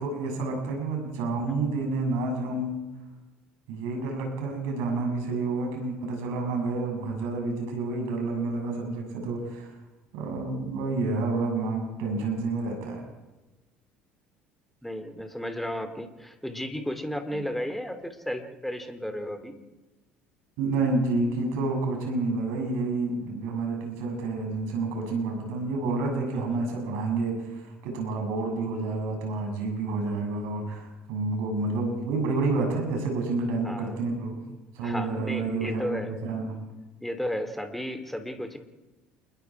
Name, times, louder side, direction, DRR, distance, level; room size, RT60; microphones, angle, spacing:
voice 1, 0.0-2.8 3.7-9.7 10.1-13.0 17.3-17.4 20.6-34.4 34.7-36.6, right 3 dB, 65° right, 2 dB, 7.3 m, -29 dB
voice 2, 14.8-19.6 26.5-26.6 33.6-33.9 34.8-36.2 37.0-38.6, equal, 5° left, 8 dB, 3.1 m, -34 dB
28.0 x 21.5 x 4.9 m, 1.1 s
figure-of-eight pair, 60°, 5 cm